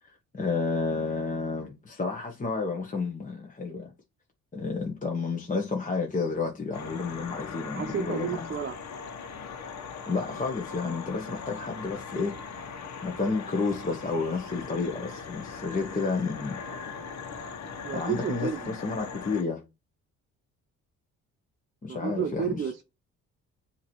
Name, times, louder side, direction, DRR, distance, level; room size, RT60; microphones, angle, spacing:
voice 1, 0.0-3.9 4.5-8.5 10.1-12.4 13.0-16.6 17.9-19.6 21.8-22.7, left 4 dB, 25° left, 1.2 m, -31 dB
sound 1, 6.7-19.4, left 5 dB, 65° left, 1.3 m, -40 dB
voice 2, 7.7-8.7 17.8-18.6 21.9-22.8, right 7 dB, 35° right, 0.8 m, -31 dB
7.1 x 3.0 x 4.5 m
cardioid pair, 90°, 30 cm